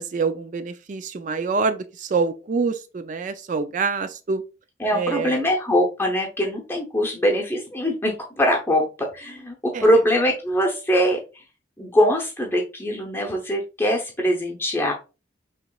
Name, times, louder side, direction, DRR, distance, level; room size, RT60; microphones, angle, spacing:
voice 1, 0.0-4.4 4.9-5.4 9.7-9.9, right 4 dB, 40° right, 0.3 m, -26 dB
voice 2, 4.8-11.2 11.8-14.9, equal, 10° left, 0.7 m, -22 dB
5.8 x 3.0 x 2.3 m
head